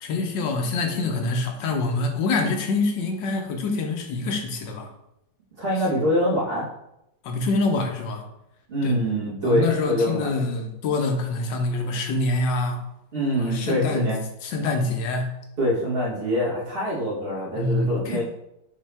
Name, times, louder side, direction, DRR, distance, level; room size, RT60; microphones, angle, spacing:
voice 1, 0.0-4.9 7.2-8.2 8.8-9.0 9.4-12.8 13.4-14.1 14.4-15.3 17.6-18.2, left 3 dB, 90° left, 3 dB, 1.4 m, -25 dB
voice 2, 5.6-6.7 8.7-10.4 13.1-14.2 15.6-18.2, equal, 35° right, -7 dB, 1.5 m, -24 dB
5.3 x 2.8 x 3.4 m, 0.84 s
omnidirectional pair, 1.9 m